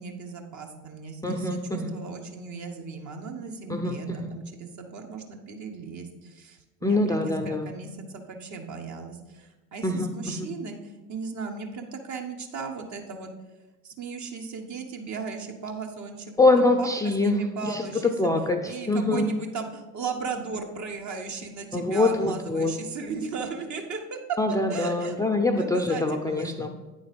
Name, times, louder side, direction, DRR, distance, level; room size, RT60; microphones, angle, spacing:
voice 1, 0.0-13.3 13.8-18.1 18.6-24.2 24.7-25.2 25.5-26.7, right 5 dB, 45° right, 3 dB, 1.2 m, -37 dB
voice 2, 1.2-1.9 3.7-4.3 6.8-7.7 9.8-10.5 16.4-19.3 21.7-22.7 24.4-26.7, left 2 dB, 10° left, 3 dB, 0.6 m, -24 dB
8.9 x 3.9 x 5.2 m, 1.2 s
hypercardioid pair, 65°, 41 cm